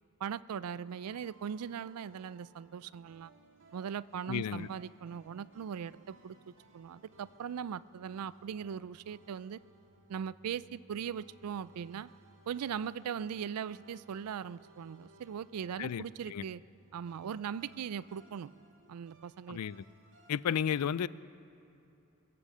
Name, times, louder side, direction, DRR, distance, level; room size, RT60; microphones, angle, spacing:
voice 1, 0.2-3.3 3.7-9.6 10.1-12.1 12.5-16.6 16.9-18.5 18.9-19.6, right 7 dB, 80° right, 19 dB, 0.4 m, -39 dB
sound 1, 0.8-20.4, right 2 dB, 60° right, 1.8 m, -62 dB
voice 2, 4.3-4.7 15.8-16.4 19.5-19.8 20.3-21.1, left 8 dB, 85° left, 20 dB, 0.4 m, -33 dB
23.0 x 8.5 x 7.4 m, 2.8 s
head